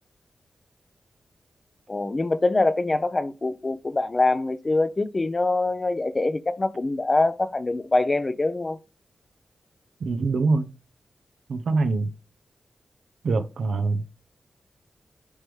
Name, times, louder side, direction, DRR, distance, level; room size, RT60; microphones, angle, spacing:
voice 1, 1.9-8.8, left 2 dB, 40° left, 0.7 m, -24 dB
voice 2, 10.0-10.7 11.5-12.1 13.2-14.0, right 3 dB, 80° right, 0.7 m, -24 dB
9.7 x 3.4 x 3.2 m
cardioid pair, 45°, 0 cm